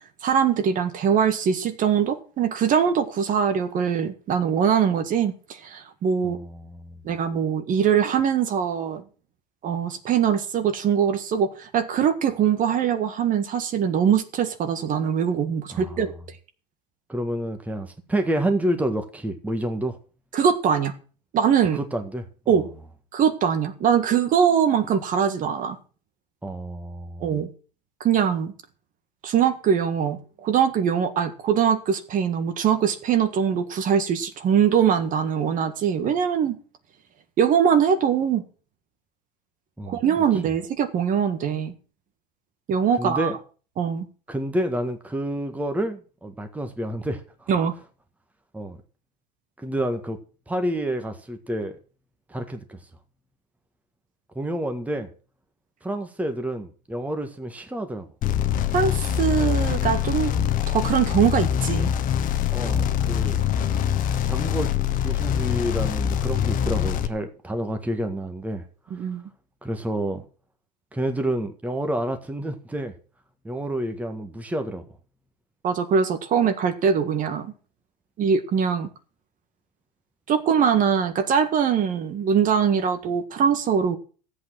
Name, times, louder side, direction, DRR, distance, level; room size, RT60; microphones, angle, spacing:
voice 1, 0.2-6.4 7.0-9.0 9.6-16.1 20.3-20.9 21.3-21.8 22.5-22.7 23.1-25.8 27.2-27.5 28.0-28.5 29.2-36.6 37.4-38.4 39.9-41.7 42.7-43.3 43.8-44.0 47.5-47.7 58.7-60.3 60.7-61.9 68.9-69.2 75.6-77.5 78.2-78.9 80.3-84.0, right 7 dB, 40° right, 1.8 m, -22 dB
voice 2, 6.2-7.0 15.7-16.0 17.1-20.0 21.8-22.5 26.4-27.3 39.8-40.0 43.0-43.4 44.3-47.5 48.5-48.8 49.6-50.2 50.5-51.8 52.3-52.8 54.3-55.1 55.8-58.1 62.5-63.4 64.2-64.7 65.0-68.6 69.0-69.1 69.6-70.2 70.9-72.9 73.4-74.8, right 1 dB, 5° right, 1.7 m, -29 dB
sound 1, 58.2-67.1, left 9 dB, 40° left, 1.3 m, -24 dB
13.5 x 8.3 x 6.2 m
hypercardioid pair, 95°, 21 cm